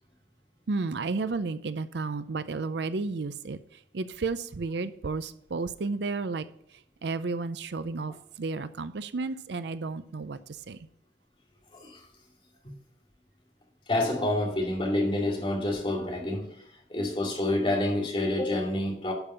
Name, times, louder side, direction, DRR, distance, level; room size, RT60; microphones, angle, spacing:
voice 1, 0.7-10.9, right 3 dB, 60° right, 13 dB, 0.5 m, -33 dB
voice 2, 11.7-12.1 12.6-12.7 13.9-16.6 16.9-19.1, left 1 dB, 30° left, -1 dB, 2.4 m, -28 dB
11.5 x 5.4 x 5.6 m, 0.72 s
head